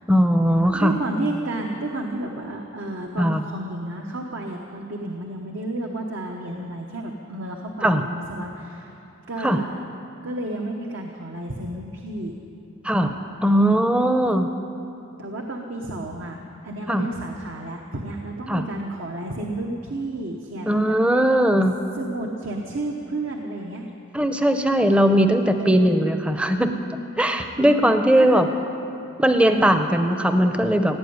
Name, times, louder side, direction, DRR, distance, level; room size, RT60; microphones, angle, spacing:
voice 1, 0.1-0.9 3.2-3.4 7.8-8.0 9.4-9.6 12.8-14.5 16.9-17.1 18.5-18.6 20.7-21.8 24.1-26.7 27.2-28.5 29.2-31.0, equal, 5° right, 7 dB, 0.6 m, -19 dB
voice 2, 0.7-8.9 9.3-9.8 10.2-12.3 13.6-13.9 15.2-21.0 21.9-23.9 25.6-26.1 27.6-28.4 29.4-29.7, right 1 dB, 65° right, 1 dB, 1.0 m, -32 dB
16.5 x 8.7 x 9.5 m, 2.9 s
head